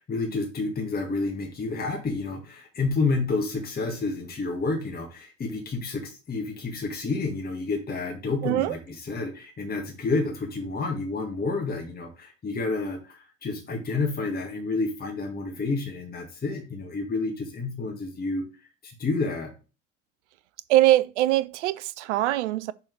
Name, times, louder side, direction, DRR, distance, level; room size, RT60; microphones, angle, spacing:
voice 1, 0.0-19.5, left 3 dB, 25° left, 1.8 m, -30 dB
voice 2, 8.4-8.8 20.7-22.7, right 15 dB, 65° right, 0.5 m, -22 dB
6.1 x 4.3 x 4.7 m
figure-of-eight pair, 65°, 38 cm